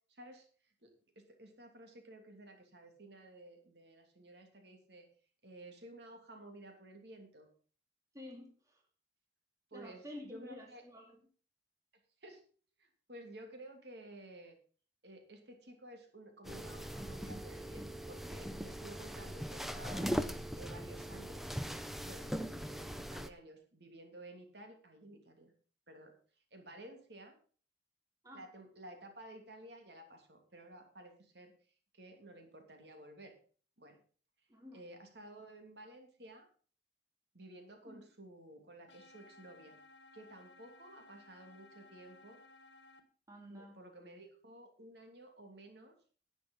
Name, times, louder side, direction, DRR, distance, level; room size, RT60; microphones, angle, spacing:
voice 1, 0.1-0.5 0.8-5.1 5.4-7.5 9.7-10.8 12.2-12.4 12.8-14.6 15.0-20.1 20.6-21.5 22.0-25.5 25.9-26.1 26.5-27.3 28.3-31.5 31.9-33.3 33.8-34.0 34.7-36.5 37.3-39.7 40.1-42.4 43.5-45.9, right 1 dB, 65° right, 4 dB, 2.8 m, -53 dB
voice 2, 8.1-8.8 9.7-11.2 28.2-28.4 34.5-34.8 37.8-38.1 43.3-43.8, left 1 dB, 20° right, 1 dB, 2.6 m, -50 dB
sound 1, 16.4-23.3, equal, ahead, 0.6 m, -40 dB
sound 2, 38.9-43.0, left 3 dB, 70° left, 1.9 m, -59 dB
11.0 x 9.6 x 5.4 m, 0.41 s
head